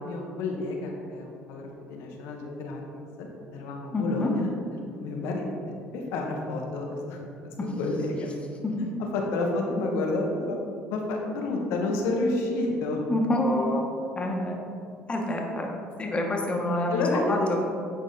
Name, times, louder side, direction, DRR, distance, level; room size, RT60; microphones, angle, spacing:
voice 1, 0.0-2.8 3.2-4.5 5.0-5.4 5.8-7.2 7.8-8.4 9.0-10.6 10.9-13.0 16.9-17.7, left 2 dB, 75° left, 1 dB, 1.2 m, -30 dB
voice 2, 3.9-4.3 7.6-7.7 8.6-8.7 13.1-13.8 14.1-14.6 15.1-16.9 17.3-17.6, left 1 dB, 25° left, 0 dB, 1.4 m, -27 dB
9.6 x 4.1 x 4.0 m, 2.5 s
hypercardioid pair, 70°, 5 cm